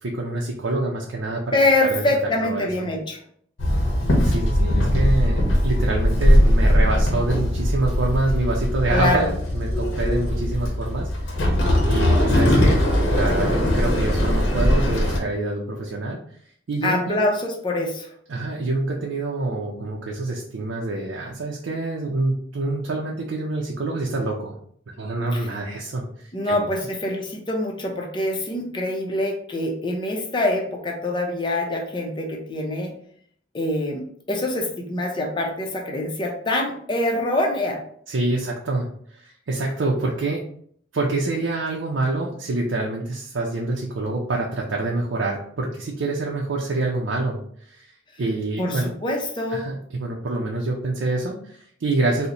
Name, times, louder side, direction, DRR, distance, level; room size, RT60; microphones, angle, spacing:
voice 1, 0.0-1.6 1.9-2.0 2.4-2.9 4.2-11.6 11.9-12.8 13.1-16.2 16.7-17.2 18.3-24.6 25.0-26.0 26.4-26.6 38.1-38.9 39.1-40.4 40.9-47.4 47.7-47.9 48.2-48.9 49.5-52.3, right 2 dB, 75° right, -2 dB, 0.5 m, -26 dB
voice 2, 1.5-3.2 8.9-9.3 16.8-18.1 25.3-25.5 26.3-32.9 33.5-37.8 48.6-49.6, left 1 dB, 25° left, 0 dB, 0.6 m, -25 dB
Walk footsteps / Chatter / Hiss, 3.6-15.2, equal, 80° left, 0.8 m, -20 dB
3.9 x 2.1 x 2.9 m, 0.62 s
head